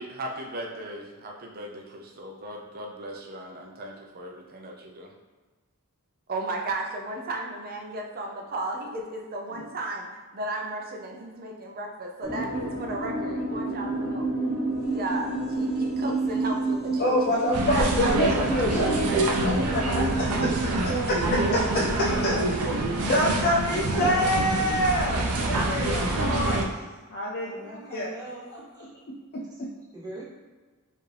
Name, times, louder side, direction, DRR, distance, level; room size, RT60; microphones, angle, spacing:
voice 1, 0.0-5.1 6.3-14.3 14.8-17.7 18.0-18.6 19.8-20.0 20.8-21.6, right 2 dB, 45° right, 1 dB, 0.6 m, -35 dB
sound 1, 12.2-21.6, right 2 dB, 65° left, 1.0 m, -32 dB
sound 2, 14.7-20.6, right 3 dB, ahead, 0.8 m, -33 dB
voice 2, 17.0-21.2 21.5-21.6 22.0-22.6 23.0-26.7 27.1-28.1 29.3-29.7, left 1 dB, 45° left, -5 dB, 0.5 m, -27 dB
sound 3, 17.5-26.6, right 2 dB, 90° right, 0.5 m, -26 dB
voice 3, 27.4-28.9 29.5-29.6 29.9-30.2, right 1 dB, 15° right, -7 dB, 1.2 m, -42 dB
4.6 x 2.6 x 3.3 m, 1.3 s
head